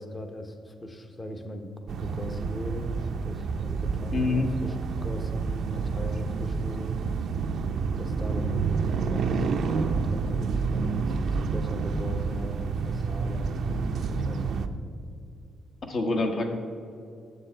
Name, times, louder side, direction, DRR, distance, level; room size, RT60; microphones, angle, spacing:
voice 1, 0.0-4.8 5.0-7.0 7.9-14.0 14.2-14.8, left 1 dB, 25° left, 6 dB, 0.9 m, -39 dB
sound 1, 1.9-14.7, right 5 dB, 65° right, 0.5 m, -29 dB
voice 2, 4.1-4.5 15.8-16.5, left 3 dB, 50° left, 3 dB, 1.3 m, -26 dB
9.2 x 7.0 x 4.4 m, 2.5 s
cardioid pair, 90°, 0 cm